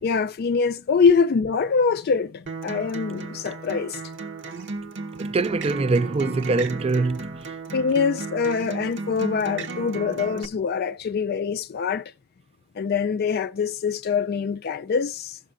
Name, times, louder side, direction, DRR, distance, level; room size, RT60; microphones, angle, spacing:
voice 1, 0.0-4.0 7.7-12.1 12.8-15.4, left 5 dB, 50° left, 0.3 m, -24 dB
Acoustic guitar, 2.5-10.4, right 4 dB, 60° right, 0.8 m, -34 dB
voice 2, 5.2-7.5, right 3 dB, 30° right, 0.4 m, -23 dB
16.0 x 6.6 x 2.4 m
head